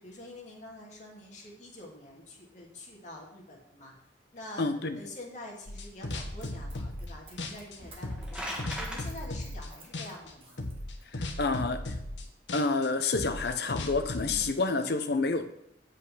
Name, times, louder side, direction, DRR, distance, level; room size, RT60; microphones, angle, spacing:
voice 1, 0.0-3.9 4.3-4.7 4.9-10.6 14.2-14.9, left 1 dB, 45° left, -3 dB, 2.3 m, -46 dB
voice 2, 4.6-5.0 11.1-11.9 12.5-15.5, left 3 dB, 65° left, 8 dB, 0.8 m, -29 dB
sound 1, 5.7-7.1 7.4-9.7 9.9-10.3 10.6-14.4, left 1 dB, 85° left, 1.2 m, -37 dB
Run, 6.0-11.3 11.9-12.0, right 1 dB, 30° right, 1.4 m, -51 dB
sound 2, 8.0-9.0, equal, 5° right, 1.3 m, -38 dB
8.1 x 5.4 x 5.6 m, 0.77 s
head